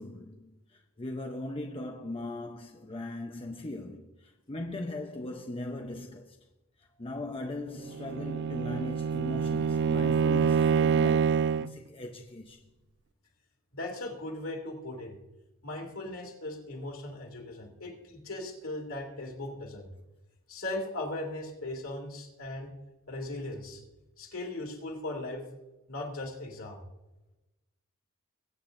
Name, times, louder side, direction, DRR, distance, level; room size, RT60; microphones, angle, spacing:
voice 1, 0.0-6.4 6.8-12.6, left 2 dB, 25° left, 0.7 m, -39 dB
Bowed string instrument, 7.9-11.8, right 6 dB, 55° right, 0.3 m, -26 dB
voice 2, 13.7-15.2 15.6-19.9 20.5-22.7 23.1-23.8 24.2-25.4 25.9-26.8, left 2 dB, 65° left, 2.7 m, -38 dB
21.0 x 9.2 x 2.6 m
head